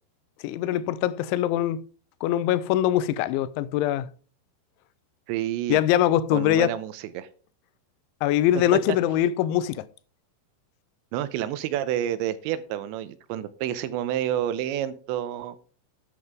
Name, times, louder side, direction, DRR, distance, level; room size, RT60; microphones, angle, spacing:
voice 1, 0.4-1.8 2.2-4.1 5.7-6.7 8.2-9.8, left 12 dB, 90° left, 3.0 m, -23 dB
voice 2, 5.3-5.8 6.3-7.3 8.7-8.8 11.1-15.6, right 12 dB, 85° right, 3.0 m, -29 dB
11.0 x 10.0 x 3.6 m
omnidirectional pair, 5.2 m